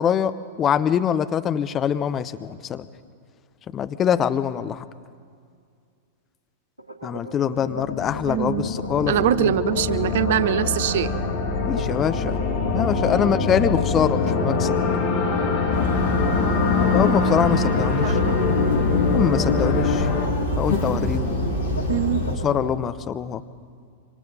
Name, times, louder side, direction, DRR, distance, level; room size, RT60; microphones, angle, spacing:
voice 1, 0.0-2.9 3.7-4.8 7.0-9.1 9.4-9.5 11.6-12.4 12.7-14.8 16.9-18.2 19.1-20.1 20.6-21.4 22.4-23.4, left 8 dB, 25° left, 12 dB, 0.8 m, -24 dB
sound 1, 6.8-22.8, right 1 dB, 85° right, 2.0 m, -37 dB
sound 2, 7.5-20.3, left 4 dB, 45° left, 3.2 m, -24 dB
voice 2, 8.3-8.7 9.1-11.1 12.7-13.4 18.0-18.4 21.9-22.3, right 11 dB, 55° right, 17 dB, 0.6 m, -24 dB
sound 3, 15.7-22.4, left 2 dB, 70° left, 3.6 m, -26 dB
25.5 x 25.0 x 4.1 m, 2.2 s
figure-of-eight pair, 95°, 0 cm